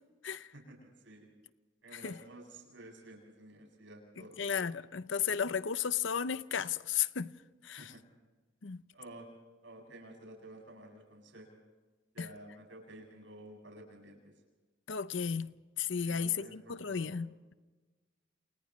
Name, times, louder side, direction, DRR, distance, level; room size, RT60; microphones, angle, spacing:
voice 1, 0.5-1.3 1.8-4.5 7.8-8.0 8.9-9.3 9.6-11.6 12.1-14.3 16.0-17.1, right 1 dB, 70° right, 7.9 m, -52 dB
voice 2, 4.4-7.3 7.6-7.9 8.6-8.8 12.2-12.3 14.9-17.3, left 7 dB, 70° left, 0.6 m, -34 dB
29.0 x 29.0 x 3.2 m
head